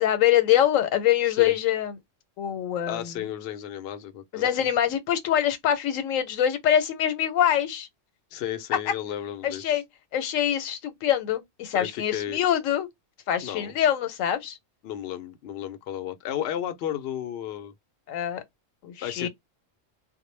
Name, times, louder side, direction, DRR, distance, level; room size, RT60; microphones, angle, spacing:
voice 1, 0.0-2.0 2.4-3.1 4.3-7.9 9.4-9.8 10.1-12.9 13.3-14.6 18.1-18.4 18.8-19.3, left 10 dB, 85° left, 1.0 m, -24 dB
voice 2, 2.9-4.5 8.3-9.6 11.7-12.4 13.4-13.7 14.8-17.7 19.0-19.3, left 11 dB, 65° left, 0.7 m, -33 dB
2.1 x 2.1 x 3.1 m
omnidirectional pair, 1.3 m